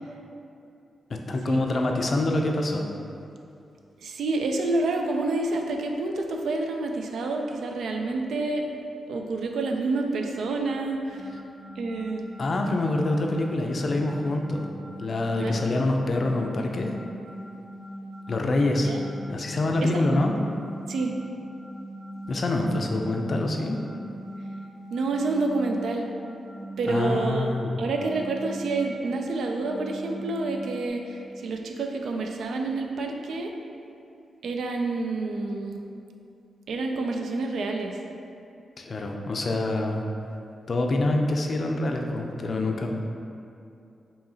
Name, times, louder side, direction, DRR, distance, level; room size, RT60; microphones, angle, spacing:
voice 1, 1.1-2.9 12.4-14.7 15.0-16.9 18.3-18.9 19.3-20.3 22.3-23.8 26.8-27.8 38.8-40.0 40.7-42.9, left 2 dB, 50° left, 2 dB, 0.4 m, -26 dB
voice 2, 4.0-8.7 9.1-11.3 11.8-12.3 15.4-15.6 18.9-19.0 19.8-19.9 20.9-21.1 24.9-26.1 26.8-27.5 27.8-33.5 34.4-35.8 36.7-38.0, right 3 dB, 80° right, 3 dB, 0.3 m, -28 dB
sound 1, 11.1-30.9, equal, 10° right, 0.7 m, -41 dB
4.8 x 2.8 x 2.7 m, 2.5 s
cardioid pair, 105°, 0 cm